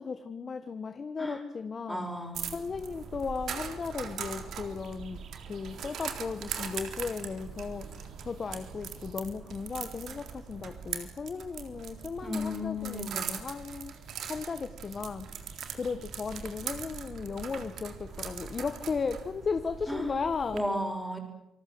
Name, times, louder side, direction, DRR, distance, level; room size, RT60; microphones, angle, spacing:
voice 1, 0.0-2.1 2.5-5.2 5.5-13.9 14.3-15.3 15.8-20.6, left 5 dB, 40° left, 10 dB, 1.4 m, -36 dB
voice 2, 1.9-2.6 12.2-13.3 19.9-20.2 20.5-21.2, left 1 dB, 5° right, 4 dB, 6.4 m, -34 dB
sound 1, 2.3-20.6, right 7 dB, 65° right, 3.6 m, -41 dB
28.5 x 19.5 x 8.0 m, 0.89 s
cardioid pair, 100°, 0 cm